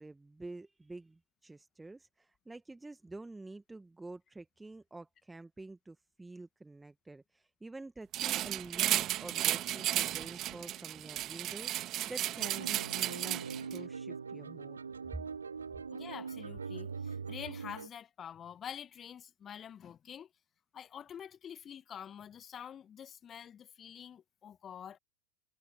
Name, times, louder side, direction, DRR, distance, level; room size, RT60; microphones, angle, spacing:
voice 1, 0.0-14.8, right 2 dB, 10° right, 1.4 m, -48 dB
sound 1, 8.1-13.8, right 14 dB, 40° right, 1.6 m, -34 dB
sound 2, 12.4-17.9, right 5 dB, 80° right, 3.2 m, -42 dB
voice 2, 15.9-20.3 20.7-25.0, left 8 dB, 30° left, 1.6 m, -47 dB
figure-of-eight pair, 85°, 0 cm